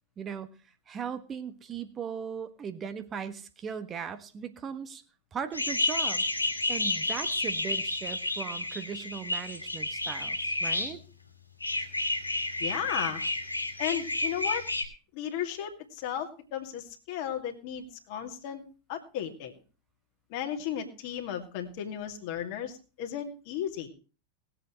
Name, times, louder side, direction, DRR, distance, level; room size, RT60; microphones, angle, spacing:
voice 1, 0.2-0.5 0.9-5.0 5.3-6.2 6.7-11.0, right 7 dB, 25° right, 10 dB, 1.4 m, -38 dB
sound 1, 5.5-10.9 11.6-14.8, left 2 dB, 85° left, 2.3 m, -31 dB
voice 2, 12.6-13.2 13.8-14.6 15.1-18.6 18.9-19.5 20.3-23.9, left 9 dB, 45° left, 4 dB, 2.3 m, -35 dB
20.0 x 8.1 x 4.5 m, 0.34 s
figure-of-eight pair, 90°, 0 cm